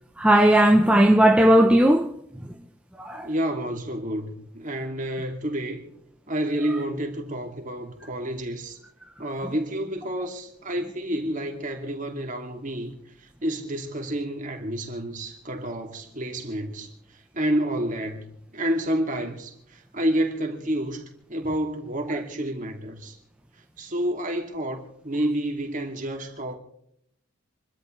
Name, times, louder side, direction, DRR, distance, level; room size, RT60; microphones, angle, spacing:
voice 1, 0.2-2.1 3.0-3.3, right 1 dB, 5° right, 0.8 m, -17 dB
voice 2, 3.2-5.9 6.3-8.8 9.2-13.0 13.4-16.9 17.3-23.2 23.8-26.5, right 1 dB, 35° right, 2.5 m, -29 dB
27.5 x 13.0 x 3.3 m
head